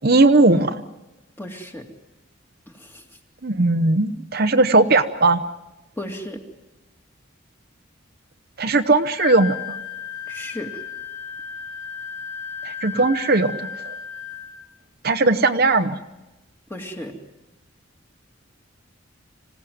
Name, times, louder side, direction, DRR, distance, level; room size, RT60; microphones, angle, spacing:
voice 1, 0.0-0.8 3.4-5.4 8.6-9.6 12.6-13.9 15.0-16.0, right 3 dB, 50° right, 8 dB, 0.8 m, -18 dB
voice 2, 1.4-1.9 2.7-3.1 6.0-6.5 10.3-10.8 16.7-17.2, left 1 dB, 10° left, 3 dB, 2.3 m, -34 dB
Wind instrument woodwind instrument, 9.2-14.6, left 7 dB, 90° left, 2.5 m, -34 dB
26.0 x 16.5 x 9.4 m, 1.0 s
head